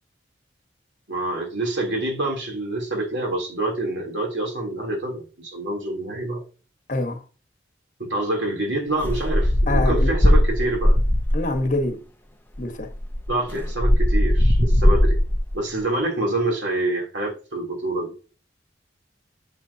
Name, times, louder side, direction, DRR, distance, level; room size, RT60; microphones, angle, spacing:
voice 1, 1.1-6.4 8.0-11.0 13.3-15.2 15.5-18.1, right 2 dB, 85° right, 3.2 m, -26 dB
voice 2, 6.9-7.2 9.7-10.1 11.3-12.0 12.6-12.9, left 2 dB, 45° left, 1.3 m, -25 dB
sound 1, 9.0-11.6 12.6-12.7 12.9-15.6, equal, 10° left, 0.8 m, -19 dB
7.4 x 7.3 x 2.8 m
head